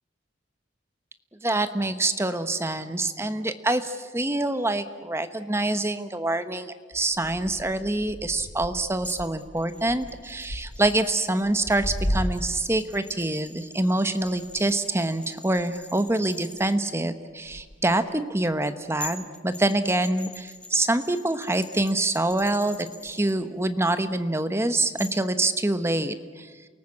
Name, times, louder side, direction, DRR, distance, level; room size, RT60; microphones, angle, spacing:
voice 1, 1.4-22.8 23.0-26.5, right 2 dB, 15° right, 10 dB, 1.0 m, -26 dB
sound 1, 6.9-12.7 13.0-20.1 20.4-21.1 21.8-23.7 24.1-24.5 25.2-25.3, equal, 50° left, 3.1 m, -37 dB
sound 2, 9.0-16.7 18.6-18.7 19.0-23.3 25.0-25.3, left 2 dB, 5° left, 1.5 m, -44 dB
28.5 x 19.0 x 8.7 m, 1.4 s
head